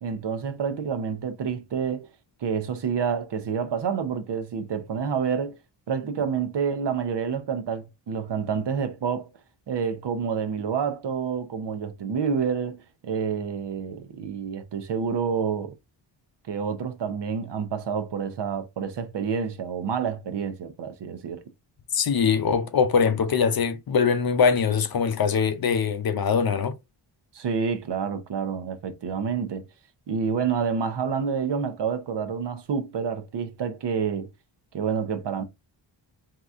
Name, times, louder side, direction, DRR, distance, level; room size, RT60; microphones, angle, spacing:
voice 1, 0.0-2.1 2.4-5.6 5.9-9.3 9.7-15.7 16.5-21.4 27.3-29.6 30.1-34.3 34.7-35.4, right 6 dB, 60° right, 0.8 m, -28 dB
voice 2, 21.9-26.7, left 6 dB, 50° left, 0.7 m, -22 dB
3.8 x 2.9 x 3.5 m
wide cardioid pair, 130°, 47 cm